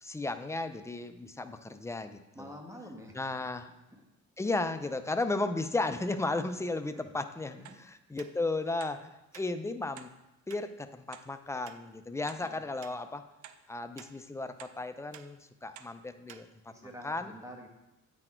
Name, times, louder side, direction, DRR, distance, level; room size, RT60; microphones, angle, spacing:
voice 1, 0.0-2.5 3.1-3.7 4.4-10.1 10.5-13.3 13.7-16.7 17.0-17.3, left 2 dB, 10° left, 9 dB, 0.4 m, -35 dB
voice 2, 2.3-3.1 6.9-7.1 7.5-7.7 12.4-12.9 16.7-17.7, equal, 10° right, 1 dB, 1.3 m, -48 dB
sound 1, 7.7-7.8 8.2-8.3 8.8-9.0 9.3-9.5 10.0-10.1 10.5-10.6 11.1-11.3 11.7-11.8 12.3-12.4 12.8-13.0 13.4-13.6 14.0-14.1 14.6-14.8 15.1-15.3 15.8-15.9 16.3-16.4 16.9-17.0, right 11 dB, 75° right, 0.5 m, -50 dB
8.8 x 4.2 x 4.4 m, 0.95 s
cardioid pair, 90°, 30 cm